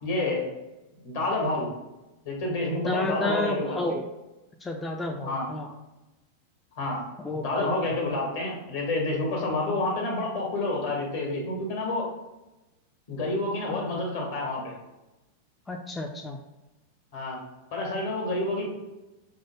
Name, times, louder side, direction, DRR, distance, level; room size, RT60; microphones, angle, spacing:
voice 1, 0.0-0.5 1.0-1.7 2.2-3.8 5.2-5.5 6.8-7.0 7.3-12.1 13.1-14.7 17.1-17.4 17.7-18.7, left 2 dB, 60° left, 0 dB, 1.3 m, -29 dB
voice 2, 2.7-4.0 4.6-5.7 7.2-8.0 15.7-16.4, left 2 dB, 15° left, 2 dB, 0.4 m, -31 dB
4.7 x 2.1 x 3.2 m, 1.0 s
hypercardioid pair, 95°, 0 cm